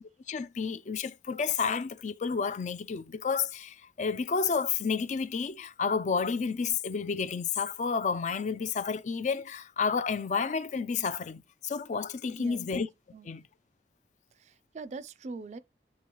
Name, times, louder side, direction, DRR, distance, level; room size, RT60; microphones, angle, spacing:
voice 1, 0.3-12.9 13.2-13.4, left 5 dB, 45° left, 0.4 m, -31 dB
voice 2, 12.4-12.8 13.1-13.3 14.4-15.6, right 3 dB, 40° right, 0.4 m, -43 dB
8.5 x 3.7 x 3.0 m
head